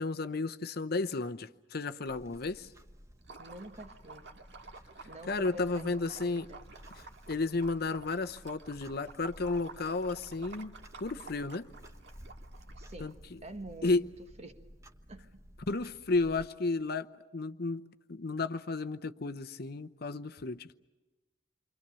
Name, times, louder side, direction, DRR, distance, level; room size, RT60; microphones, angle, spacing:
voice 1, 0.0-2.7 5.3-6.5 7.3-10.7 11.0-11.7 13.0-13.1 13.8-14.1 15.7-17.1 17.3-20.7, left 3 dB, 55° left, 0.8 m, -33 dB
Clock, 2.0-16.5, equal, 15° right, 1.2 m, -54 dB
Liquid, 3.2-13.1, right 3 dB, 65° right, 1.9 m, -51 dB
voice 2, 3.4-4.3 5.0-6.6 12.7-14.1 14.4-14.8 15.1-15.4, right 1 dB, 35° right, 1.6 m, -48 dB
29.0 x 25.0 x 6.9 m
head